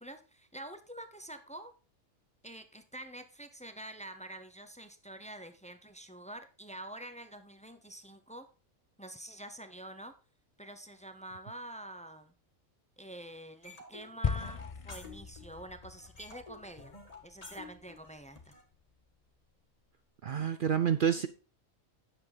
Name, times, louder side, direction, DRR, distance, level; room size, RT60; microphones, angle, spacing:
voice 1, 0.0-1.7 2.4-8.5 9.0-10.1 10.6-12.3 13.0-17.0 17.2-18.5, right 1 dB, 5° left, 9 dB, 0.6 m, -47 dB
sound 1, 13.6-15.6 15.8-18.6, left 3 dB, 30° left, 1.9 m, -51 dB
sound 2, 14.2-18.6, left 6 dB, 55° left, 0.3 m, -39 dB
voice 2, 20.2-21.3, right 8 dB, 60° right, 11 dB, 0.5 m, -28 dB
10.0 x 7.5 x 3.9 m, 0.36 s
omnidirectional pair, 1.4 m